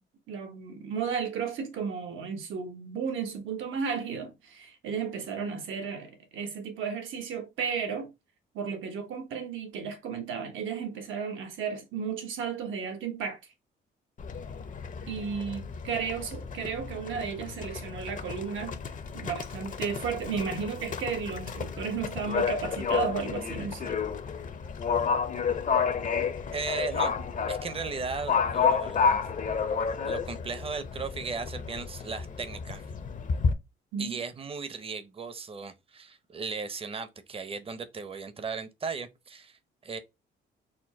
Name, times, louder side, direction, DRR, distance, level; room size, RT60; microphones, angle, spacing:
voice 1, 0.3-8.1 8.5-13.4 15.1-18.9 19.1-24.0 33.9-34.2, right 6 dB, 80° right, 1.3 m, -34 dB
Livestock farm animals working animals, 14.2-33.5, left 6 dB, 40° left, 0.6 m, -31 dB
voice 2, 26.5-27.1 27.5-29.2 30.1-32.8 34.0-40.0, right 4 dB, 30° right, 0.7 m, -36 dB
4.3 x 2.2 x 4.2 m
cardioid pair, 90°, 20 cm